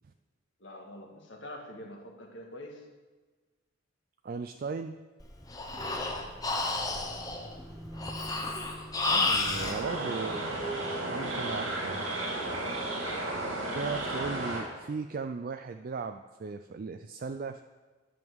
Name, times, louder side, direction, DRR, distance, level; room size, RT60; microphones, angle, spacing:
voice 1, 0.6-2.9 5.7-6.0 8.9-9.3, left 1 dB, 65° left, 2 dB, 1.7 m, -46 dB
voice 2, 4.2-5.0 9.1-10.4 11.1-12.1 13.7-17.6, right 4 dB, 45° right, 7 dB, 0.4 m, -37 dB
Breathing, 5.2-9.8, left 3 dB, 20° left, 0.9 m, -31 dB
sound 1, 5.8-13.5, equal, 10° right, 1.1 m, -48 dB
sound 2, 9.5-14.7, right 2 dB, 85° right, 2.4 m, -33 dB
11.0 x 5.4 x 7.9 m, 1.3 s
head